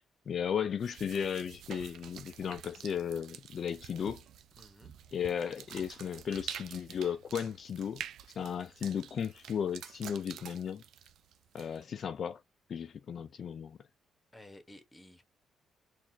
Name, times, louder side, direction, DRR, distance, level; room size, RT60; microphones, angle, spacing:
voice 1, 0.0-4.2 5.1-8.0 8.4-10.8 11.5-12.4 12.7-13.8, left 8 dB, 55° left, 0.4 m, -35 dB
sound 1, 0.8-12.0, right 9 dB, 75° right, 0.4 m, -48 dB
voice 2, 4.6-4.9 5.4-5.6 14.3-15.2, left 1 dB, 15° left, 1.2 m, -54 dB
4.1 x 2.5 x 2.8 m
cardioid pair, 90°, 0 cm